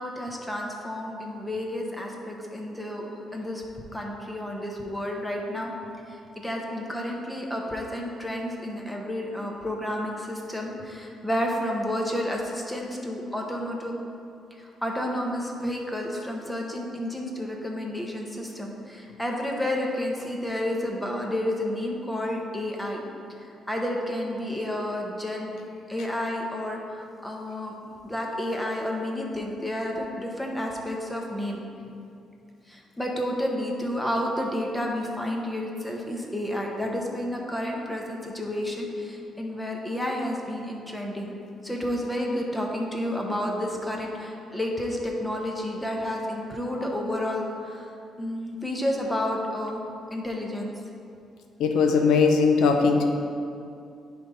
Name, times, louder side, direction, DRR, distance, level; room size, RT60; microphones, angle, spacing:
voice 1, 0.0-3.6 3.9-5.7 6.1-13.9 14.5-23.0 23.4-25.5 25.9-27.7 28.0-31.6 32.7-41.3 41.6-49.8 50.1-50.7, left 1 dB, 5° left, 0 dB, 1.1 m, -31 dB
voice 2, 51.6-53.0, left 5 dB, 80° left, 4 dB, 0.7 m, -20 dB
10.0 x 3.5 x 4.0 m, 2.5 s
cardioid pair, 90°, 0 cm